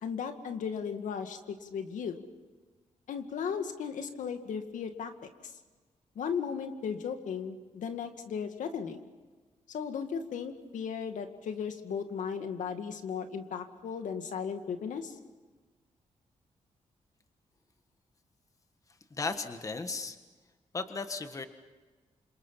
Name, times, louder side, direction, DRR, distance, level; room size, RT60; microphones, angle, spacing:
voice 1, 0.0-2.2 3.1-5.5 6.2-9.1 9.7-15.2, left 6 dB, 90° left, 6 dB, 2.1 m, -36 dB
voice 2, 19.1-20.2 20.7-21.5, left 3 dB, 25° left, 8 dB, 1.5 m, -35 dB
29.0 x 27.0 x 5.8 m, 1.3 s
wide cardioid pair, 145°, 13 cm